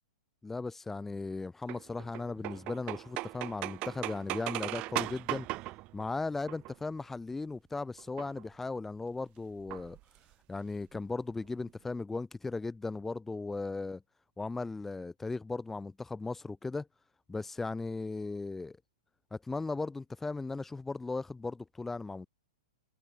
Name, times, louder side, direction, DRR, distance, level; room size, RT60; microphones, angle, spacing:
voice 1, 0.4-5.5 5.9-10.0 10.5-14.0 14.4-16.9 17.3-18.8 19.3-22.3, left 3 dB, 5° left, 2.8 m, -37 dB
sound 1, 1.7-7.0 8.0-8.4 9.7-10.3 10.7-10.8 10.9-11.0 11.3-11.7, right 20 dB, 30° right, 3.1 m, -38 dB
open air
figure-of-eight pair, 105°, 4 cm